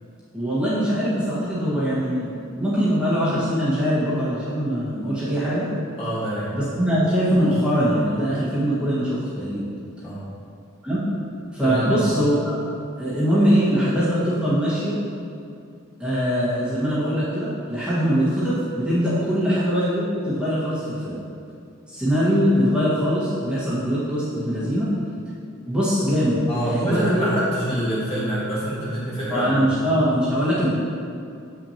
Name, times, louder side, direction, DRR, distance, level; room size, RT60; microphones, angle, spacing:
voice 1, 0.3-5.7 6.5-9.6 10.8-11.1 11.5-12.6 13.0-15.0 16.0-21.2 21.9-24.9 25.7-27.3 29.3-30.7, equal, 5° right, -11 dB, 1.5 m, -22 dB
voice 2, 6.0-6.5 10.0-10.3 11.6-12.0 26.5-30.0, right 1 dB, 25° left, -9 dB, 1.5 m, -26 dB
7.4 x 6.0 x 2.9 m, 2.5 s
head